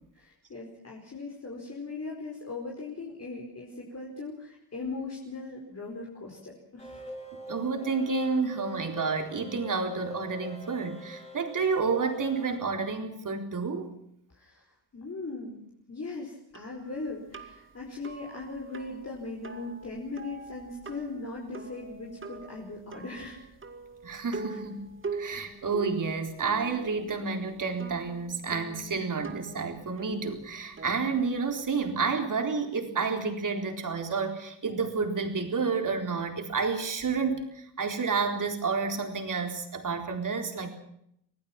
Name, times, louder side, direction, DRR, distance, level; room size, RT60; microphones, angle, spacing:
voice 1, 0.2-7.0 14.3-14.6 14.9-15.6 15.9-23.4 24.5-24.6, left 3 dB, 35° left, -2 dB, 4.9 m, -39 dB
sound 1, 6.8-12.6, right 1 dB, 15° left, 3.0 m, -44 dB
voice 2, 7.5-13.9 24.0-40.7, right 4 dB, 45° right, 4 dB, 4.1 m, -30 dB
sound 2, 16.5-31.9, right 4 dB, 30° right, 2.3 m, -43 dB
26.0 x 18.0 x 6.0 m, 0.74 s
cardioid pair, 115°, 42 cm